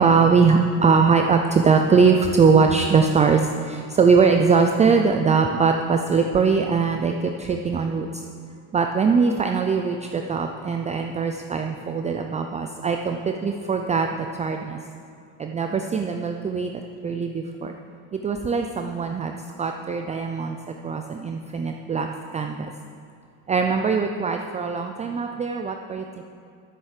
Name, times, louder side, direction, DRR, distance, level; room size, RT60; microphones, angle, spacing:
voice 1, 0.0-8.1 8.7-14.8 15.4-16.7 17.0-17.7 18.1-20.6 20.8-22.1 22.3-22.7 23.5-26.2, right 5 dB, 20° right, 4 dB, 0.4 m, -21 dB
10.0 x 7.1 x 6.6 m, 2.5 s
cardioid pair, 125°, 37 cm